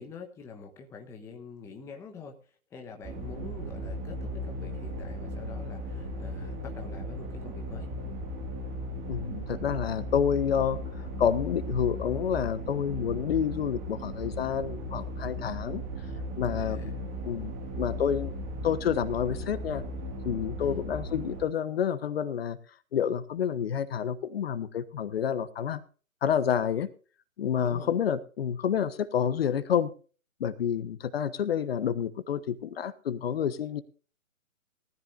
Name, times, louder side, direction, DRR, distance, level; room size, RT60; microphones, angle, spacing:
voice 1, 0.0-2.4 2.7-7.9 16.6-16.9 20.6-20.8 27.6-28.0, left 5 dB, 5° left, 3 dB, 1.0 m, -45 dB
sound 1, 3.0-21.4, equal, 20° right, 2.1 m, -36 dB
voice 2, 9.1-15.8 16.4-16.9 17.2-18.3 18.6-19.8 20.2-22.6 22.9-25.8 26.2-26.9 27.4-29.9 30.4-33.8, left 8 dB, 45° left, 13 dB, 1.3 m, -29 dB
19.5 x 14.0 x 2.6 m, 0.38 s
hypercardioid pair, 145°, 42 cm